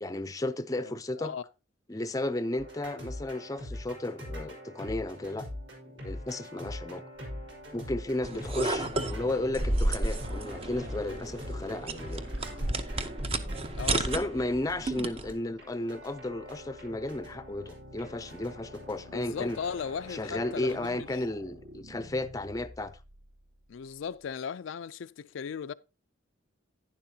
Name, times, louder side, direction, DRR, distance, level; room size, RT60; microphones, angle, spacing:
voice 1, 0.0-1.4 1.9-5.5 6.0-7.0 7.7-12.2 13.9-19.6 20.1-23.0, left 2 dB, 20° left, 0.5 m, -34 dB
sound 1, 2.6-20.9, left 1 dB, 65° right, 4.6 m, -43 dB
sound 2, 8.2-15.3, right 2 dB, 30° right, 0.7 m, -32 dB
sound 3, 8.7-24.4, left 1 dB, 80° right, 3.6 m, -52 dB
voice 2, 13.7-14.1 19.1-21.1 23.7-25.7, left 6 dB, 75° left, 0.4 m, -37 dB
11.0 x 9.9 x 2.8 m
head